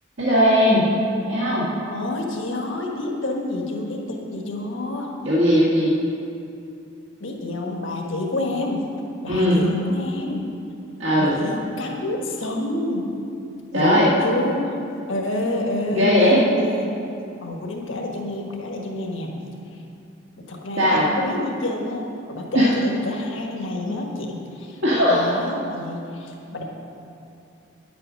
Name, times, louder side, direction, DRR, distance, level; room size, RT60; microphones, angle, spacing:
voice 1, 0.2-0.9 1.3-1.7 5.2-5.9 9.3-9.6 11.0-11.3 13.7-14.1 15.9-16.4 20.8-21.1 22.5-22.7 24.8-25.2, equal, 70° right, -8 dB, 1.8 m, -18 dB
voice 2, 1.9-5.1 7.2-8.8 9.2-10.5 11.2-13.1 13.7-14.8 15.1-17.0 17.4-19.3 19.7-19.8 20.4-24.8 25.1-26.6, left 2 dB, 75° left, 0 dB, 1.4 m, -28 dB
10.0 x 7.7 x 6.3 m, 2.6 s
head